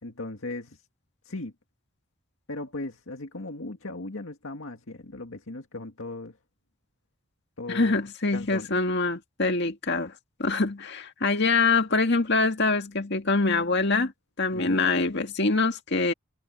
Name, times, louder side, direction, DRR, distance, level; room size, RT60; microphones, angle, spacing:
voice 1, 0.0-0.8 1.3-1.5 2.5-6.4 7.6-8.1 8.3-8.7 14.5-14.8, left 2 dB, 85° left, 2.0 m, -37 dB
voice 2, 7.7-10.1 10.4-14.1 14.4-16.1, left 3 dB, 55° left, 2.0 m, -24 dB
head